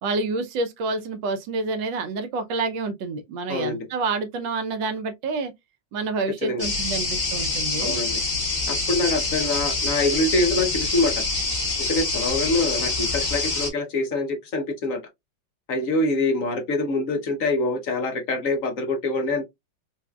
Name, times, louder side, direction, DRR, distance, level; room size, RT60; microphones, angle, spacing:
voice 1, 0.0-5.5 5.9-8.0, right 3 dB, 80° right, 1.4 m, -28 dB
sound 1, 6.6-13.7, left 3 dB, 30° left, 1.3 m, -26 dB
voice 2, 7.8-8.2 8.7-11.1 11.9-15.0 15.7-19.4, left 2 dB, 55° left, 1.0 m, -25 dB
4.8 x 2.5 x 2.2 m
omnidirectional pair, 2.0 m